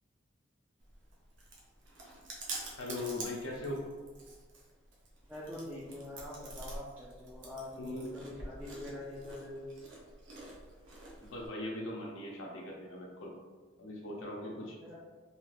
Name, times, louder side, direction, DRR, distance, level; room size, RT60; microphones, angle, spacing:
Chewing mastication, 0.8-11.5, right 2 dB, 70° right, 0.7 m, -47 dB
voice 1, 2.8-3.9 7.7-8.1 11.2-13.3 13.8-14.8, left 1 dB, 85° left, -2 dB, 0.6 m, -40 dB
voice 2, 5.3-9.8 14.8-14.9, left 1 dB, 10° right, -8 dB, 0.4 m, -44 dB
3.3 x 2.8 x 2.4 m, 1.4 s
head